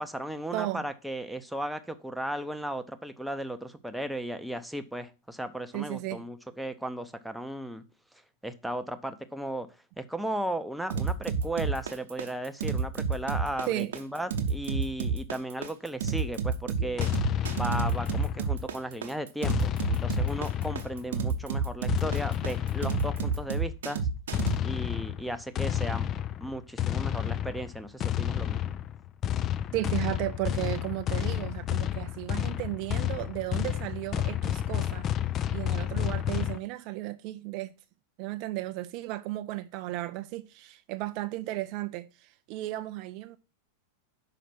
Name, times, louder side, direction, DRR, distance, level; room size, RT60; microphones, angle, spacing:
voice 1, 0.0-7.8 8.4-9.7 10.0-17.1 17.5-24.1 24.6-26.1 26.4-28.7, right 1 dB, ahead, 0.7 m, -35 dB
voice 2, 0.5-0.9 5.7-6.2 13.7-13.9 16.8-17.0 29.7-35.1 35.5-37.7 38.2-43.4, right 17 dB, 45° right, 0.4 m, -34 dB
sound 1, 10.9-24.6, right 5 dB, 60° right, 1.0 m, -30 dB
sound 2, 17.0-18.7 19.4-21.2 21.9-23.5 24.3-36.6, left 11 dB, 30° left, 0.3 m, -30 dB
5.8 x 5.0 x 5.9 m
figure-of-eight pair, 90°, 0 cm